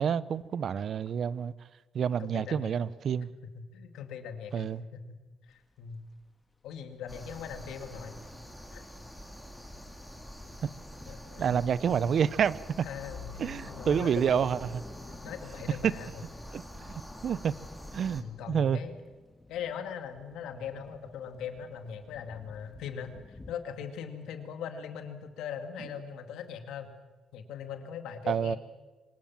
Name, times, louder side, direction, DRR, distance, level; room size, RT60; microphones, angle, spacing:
voice 1, 0.0-1.5 1.9-3.3 4.5-4.8 10.6-10.7 11.4-12.9 13.4-14.7 15.8-15.9 16.5-16.9 17.2-17.5 17.9-18.8 28.3-28.6, right 7 dB, 60° right, 0.8 m, -28 dB
voice 2, 2.2-2.7 3.4-4.7 4.9-5.2 5.5-6.0 6.6-8.2 8.7-8.9 11.1-11.7 12.8-14.5 15.1-16.2 18.2-19.0 19.5-26.9 27.3-28.6, left 7 dB, 85° left, 2.2 m, -40 dB
sound 1, 5.5-23.5, left 2 dB, 15° left, 1.8 m, -54 dB
sound 2, 7.1-18.2, equal, ahead, 3.2 m, -46 dB
sound 3, 10.3-10.9 13.0-15.1, left 7 dB, 60° left, 4.9 m, -47 dB
25.0 x 19.5 x 7.3 m
cardioid pair, 90°, 0 cm